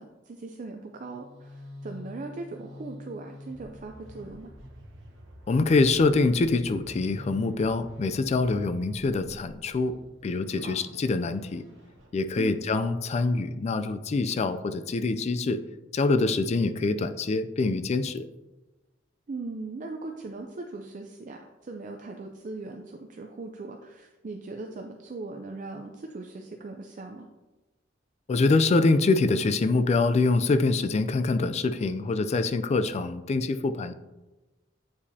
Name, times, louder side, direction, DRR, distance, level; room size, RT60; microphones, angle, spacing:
voice 1, 0.0-4.5 10.5-10.8 12.4-12.6 19.3-27.3, right 3 dB, 40° right, 3 dB, 0.4 m, -39 dB
sound 1, 0.9-12.8, left 1 dB, 70° right, 1.1 m, -48 dB
voice 2, 5.5-10.0 10.2-11.6 12.1-15.6 15.9-18.3 28.3-33.9, left 3 dB, 35° left, 11 dB, 0.3 m, -25 dB
8.4 x 4.9 x 2.7 m, 1.1 s
head